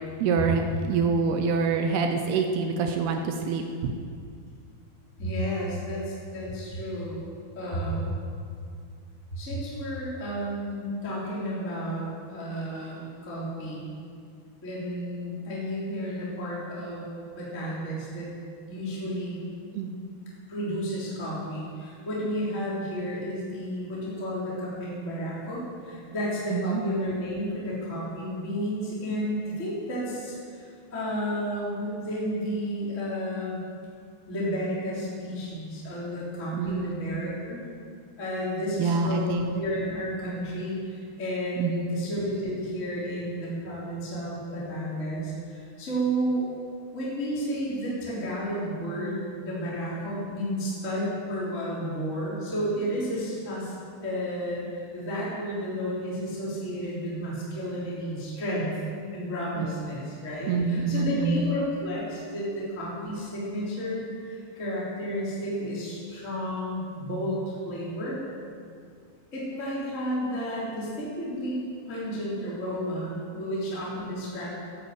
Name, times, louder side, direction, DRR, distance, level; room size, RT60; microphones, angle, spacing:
voice 1, 0.2-0.6 0.9-3.9 19.7-19.9 26.5-26.8 36.6-37.0 38.8-39.5 41.6-41.9 59.6-59.7 60.5-61.5, right 4 dB, 80° right, 5 dB, 2.4 m, -26 dB
voice 2, 5.2-7.2 7.5-8.1 9.3-13.9 14.6-17.0 17.3-18.3 18.7-19.3 20.5-30.4 30.9-33.6 34.3-37.6 38.2-46.4 46.9-53.7 54.0-58.7 59.1-68.2 69.3-71.6 71.9-74.5, equal, 15° left, -7 dB, 3.4 m, -32 dB
12.5 x 11.5 x 8.0 m, 2.2 s
omnidirectional pair, 5.5 m